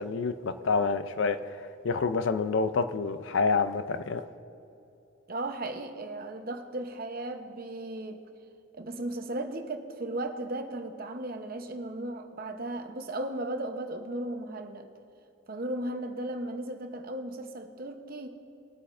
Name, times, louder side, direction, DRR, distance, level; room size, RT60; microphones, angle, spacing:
voice 1, 0.0-1.6 1.8-4.2, left 4 dB, 60° left, 11 dB, 0.5 m, -28 dB
voice 2, 5.3-8.2 8.7-14.9 15.5-18.3, right 1 dB, 45° right, 6 dB, 0.8 m, -36 dB
21.0 x 8.5 x 2.5 m, 2.7 s
head